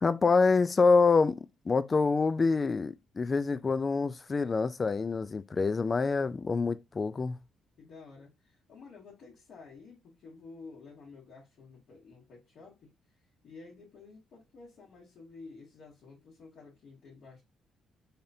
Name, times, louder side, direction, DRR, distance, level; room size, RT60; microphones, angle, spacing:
voice 1, 0.0-1.4 1.7-7.4, left 4 dB, 35° left, 0.4 m, -26 dB
voice 2, 7.8-17.4, left 4 dB, 70° left, 1.8 m, -51 dB
4.0 x 3.5 x 2.6 m
cardioid pair, 90°, 0 cm